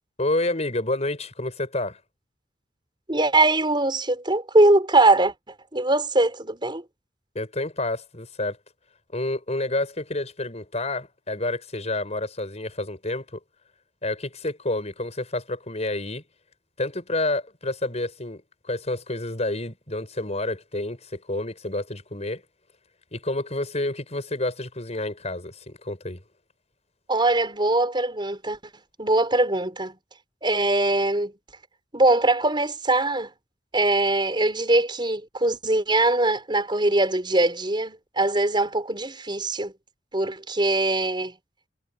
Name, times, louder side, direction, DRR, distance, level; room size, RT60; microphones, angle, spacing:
voice 1, 0.2-2.0 7.3-8.6 9.1-13.4 14.0-16.2 16.8-18.4 18.7-22.4 23.1-26.2, left 2 dB, 40° left, 5.9 m, -29 dB
voice 2, 3.1-6.8 27.1-28.6 29.0-30.0 30.4-31.3 31.9-33.3 33.7-39.7 40.1-41.4, right 2 dB, 25° right, 5.6 m, -22 dB
head